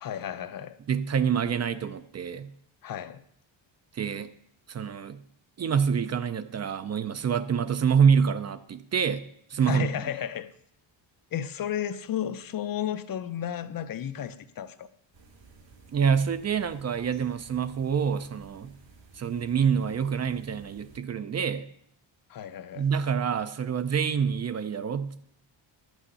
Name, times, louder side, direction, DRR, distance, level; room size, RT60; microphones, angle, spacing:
voice 1, 0.0-0.8 2.8-3.2 9.6-10.5 11.3-14.9 22.3-22.9, left 10 dB, 50° left, 0.7 m, -33 dB
voice 2, 0.9-2.5 3.9-4.3 4.7-5.2 5.6-9.2 9.5-9.9 15.9-18.7 19.1-21.7 22.7-25.2, right 7 dB, 35° right, 0.5 m, -26 dB
sound 1, 15.1-21.0, right 4 dB, 85° right, 3.0 m, -55 dB
12.0 x 6.3 x 8.1 m
cardioid pair, 150°, 44 cm